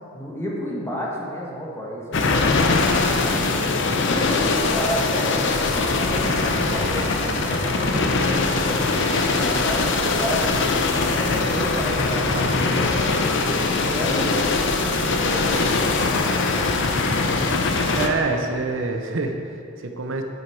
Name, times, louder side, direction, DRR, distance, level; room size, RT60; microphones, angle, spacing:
voice 1, 0.1-3.7 4.1-10.5 10.8-12.3 12.7-16.2 16.8-17.7, equal, 15° left, -4 dB, 1.4 m, -32 dB
sound 1, 2.1-18.1, left 3 dB, 60° left, 0.7 m, -22 dB
sound 2, 6.1-17.4, right 1 dB, 25° right, 2.0 m, -37 dB
voice 2, 17.9-20.2, right 3 dB, 65° right, 4 dB, 0.7 m, -26 dB
9.0 x 8.0 x 4.5 m, 2.6 s
head